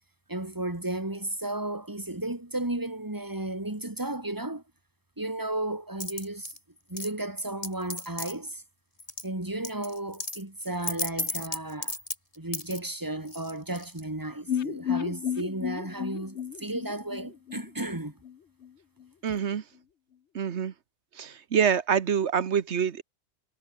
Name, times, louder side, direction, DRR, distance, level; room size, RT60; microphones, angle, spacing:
voice 1, 0.3-4.6 5.2-6.5 6.9-8.6 9.2-11.9 12.4-18.1, right 1 dB, 20° right, 2.6 m, -34 dB
sound 1, 6.0-6.6 7.0-8.3 9.0-9.3 9.6-12.8 13.3-14.0, left 2 dB, 30° left, 3.5 m, -34 dB
sound 2, 14.5-18.3 18.6-18.7 19.0-19.1, left 9 dB, 85° left, 1.2 m, -33 dB
voice 2, 19.2-19.6 20.3-20.7 21.2-23.0, right 7 dB, 85° right, 1.4 m, -26 dB
omnidirectional pair, 1.1 m